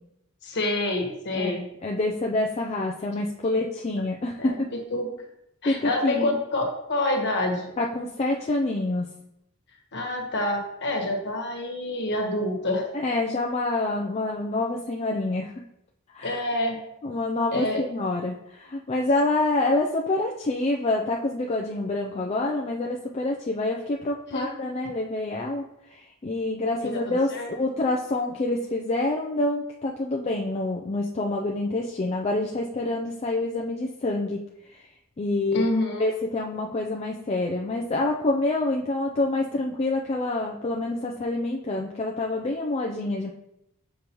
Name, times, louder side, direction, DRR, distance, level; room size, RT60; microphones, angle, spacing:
voice 1, 0.4-1.6 3.4-3.6 4.4-4.6 4.9-5.1 5.6-7.7 9.9-12.9 16.2-16.8 17.5-17.8 24.3-24.5 26.8-27.5 35.5-36.1, left 1 dB, 50° left, 1 dB, 1.3 m, -27 dB
voice 2, 1.3-4.7 5.6-6.4 7.8-9.1 12.9-15.6 16.1-16.4 17.0-34.4 34.7-34.8 35.2-35.7 36.0-43.3, left 2 dB, 30° left, 0 dB, 0.4 m, -27 dB
6.8 x 5.0 x 3.0 m, 0.82 s
head